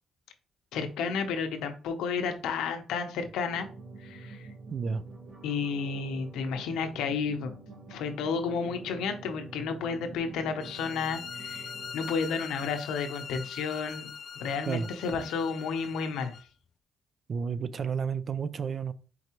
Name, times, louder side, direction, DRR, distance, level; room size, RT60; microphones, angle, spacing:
voice 1, 0.7-3.7 4.0-4.5 5.4-7.5 7.9-14.1 14.4-16.3, left 5 dB, 90° left, 0.7 m, -32 dB
sound 1, 3.5-11.9, right 3 dB, 75° right, 2.2 m, -47 dB
voice 2, 4.7-5.0 14.7-14.9 17.3-18.9, right 6 dB, 50° right, 0.4 m, -31 dB
sound 2, 10.6-16.4, left 7 dB, 50° left, 0.3 m, -42 dB
4.6 x 3.9 x 2.9 m
cardioid pair, 90°, 0 cm